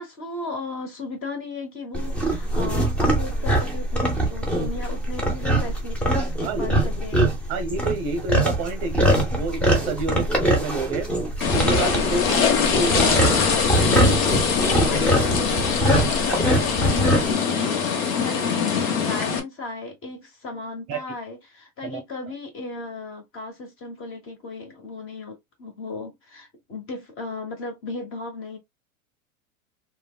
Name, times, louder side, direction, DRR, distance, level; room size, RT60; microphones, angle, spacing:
voice 1, 0.0-7.5 10.1-10.3 14.6-28.6, left 2 dB, 30° left, 1.2 m, -36 dB
sound 1, 1.9-17.3, right 1 dB, 5° left, 0.5 m, -23 dB
voice 2, 7.5-9.0 9.3-11.1 11.5-12.3 12.7-13.5 20.9-21.0 21.8-22.0, right 3 dB, 35° right, 0.7 m, -28 dB
sound 2, 11.4-19.4, left 6 dB, 65° left, 1.0 m, -23 dB
3.2 x 2.2 x 2.3 m
hypercardioid pair, 115°, 43 cm